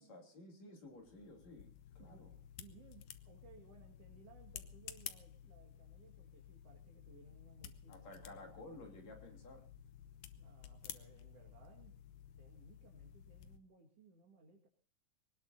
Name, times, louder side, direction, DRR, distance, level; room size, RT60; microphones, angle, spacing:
voice 1, 0.0-1.7 2.0-2.4 7.9-9.6, left 2 dB, 65° left, 2 dB, 4.3 m, -54 dB
sound 1, 0.9-13.6, left 10 dB, 80° left, 2.3 m, -54 dB
voice 2, 2.6-8.4 10.4-11.9 12.4-14.7, right 4 dB, 55° right, 1 dB, 3.1 m, -62 dB
24.0 x 19.0 x 2.7 m, 0.38 s
omnidirectional pair, 3.4 m